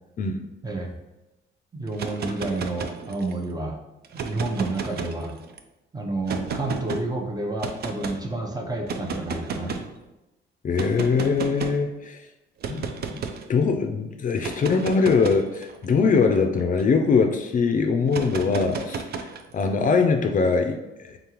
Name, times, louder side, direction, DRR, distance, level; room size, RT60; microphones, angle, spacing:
voice 1, 0.2-0.5 10.6-12.2 12.7-12.8 13.1-13.2 13.5-19.3 19.5-21.2, left 5 dB, 40° left, 5 dB, 0.4 m, -22 dB
voice 2, 1.7-3.8 4.1-5.3 5.9-9.9, right 2 dB, 20° right, 2 dB, 0.7 m, -30 dB
sound 1, 1.9-3.4 4.0-5.6 6.3-7.0 7.6-8.2 8.8-9.9 10.8-11.8 12.6-13.4 14.3-17.1 18.1-19.6, right 5 dB, 55° right, 0.5 m, -33 dB
3.7 x 3.6 x 2.9 m, 1.0 s
cardioid pair, 90°, 20 cm